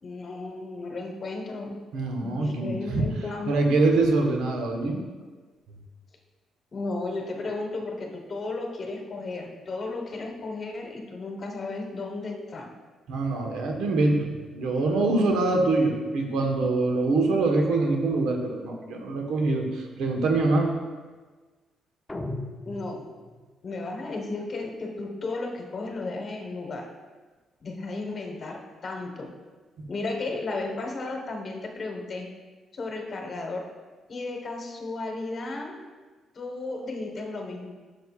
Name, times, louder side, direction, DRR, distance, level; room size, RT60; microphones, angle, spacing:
voice 1, 0.0-1.8 2.2-3.5 6.7-12.7 22.7-23.1 23.6-26.9 27.6-29.3 29.9-32.3 32.7-33.7 34.1-35.8 36.3-37.7, left 3 dB, 45° left, 2 dB, 1.1 m, -34 dB
voice 2, 1.9-3.1 3.5-5.0 13.1-20.7, right 2 dB, 85° right, 2 dB, 1.1 m, -24 dB
sound 1, 22.1-23.6, left 2 dB, 15° left, 0.6 m, -37 dB
9.6 x 6.4 x 2.4 m, 1.3 s
cardioid pair, 90°, 0 cm